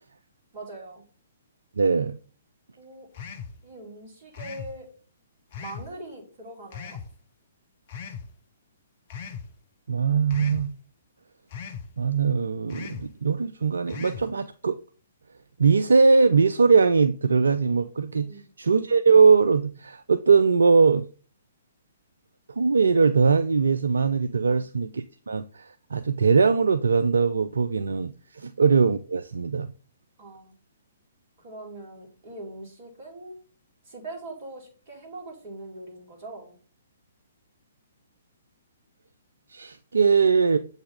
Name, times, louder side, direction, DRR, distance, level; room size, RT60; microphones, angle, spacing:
voice 1, 0.5-1.0 2.8-3.1 3.6-4.9 5.6-7.0 18.2-18.5 28.4-28.5 30.2-30.5 31.4-33.4 33.8-36.6, right 2 dB, 40° right, 2.5 m, -42 dB
voice 2, 1.8-2.2 9.9-10.7 12.0-14.8 15.6-18.3 18.6-21.1 22.6-29.7 39.5-40.6, right 5 dB, 65° right, 0.3 m, -21 dB
sound 1, 3.1-3.6 4.3-4.7 5.5-5.9 6.7-7.1 7.9-8.3 9.1-9.5 10.3-10.7 11.5-11.9 12.7-13.1 13.9-14.3, left 6 dB, 40° left, 0.6 m, -38 dB
7.7 x 3.6 x 3.7 m
figure-of-eight pair, 125°, 0 cm